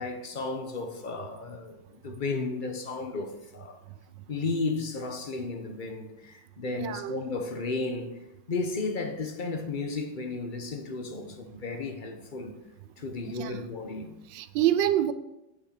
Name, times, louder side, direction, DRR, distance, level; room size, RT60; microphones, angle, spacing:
voice 1, 0.0-3.8 4.3-12.5 13.0-14.1, left 3 dB, 35° left, 0.8 m, -34 dB
voice 2, 6.8-7.1 13.4-13.6 14.3-15.1, right 12 dB, 80° right, 1.3 m, -26 dB
9.2 x 6.4 x 5.8 m
omnidirectional pair, 2.0 m